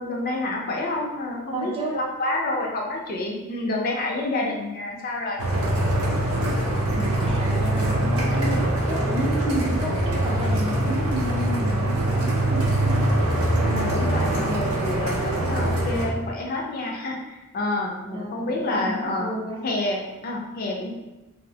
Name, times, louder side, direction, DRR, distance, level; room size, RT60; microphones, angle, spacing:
voice 1, 0.0-5.4 13.6-19.3 19.6-20.9, left 2 dB, 45° left, -1 dB, 0.4 m, -28 dB
voice 2, 1.5-2.0 7.0-8.6 8.9-13.1 18.1-19.6, right 1 dB, 25° right, -2 dB, 0.4 m, -31 dB
sound 1, 5.4-16.0, right 1 dB, 85° right, 0.5 m, -23 dB
2.9 x 2.0 x 2.7 m, 1.0 s
head